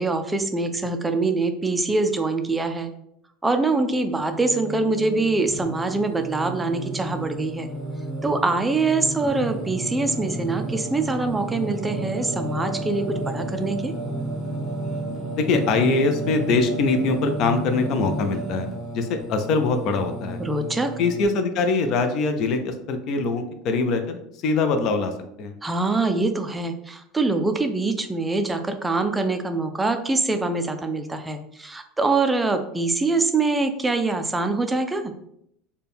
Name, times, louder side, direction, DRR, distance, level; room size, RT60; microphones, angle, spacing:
voice 1, 0.0-2.9 3.4-7.7 8.2-13.9 20.4-20.9 25.6-35.1, right 3 dB, 10° right, 6 dB, 0.3 m, -24 dB
Singing, 4.1-21.2, right 2 dB, 30° left, 1.4 m, -32 dB
voice 2, 15.4-18.7 18.9-20.4 21.0-25.1 25.4-25.5, left 3 dB, 45° left, 7 dB, 0.5 m, -23 dB
4.2 x 2.2 x 3.5 m, 0.75 s
cardioid pair, 150°, 0 cm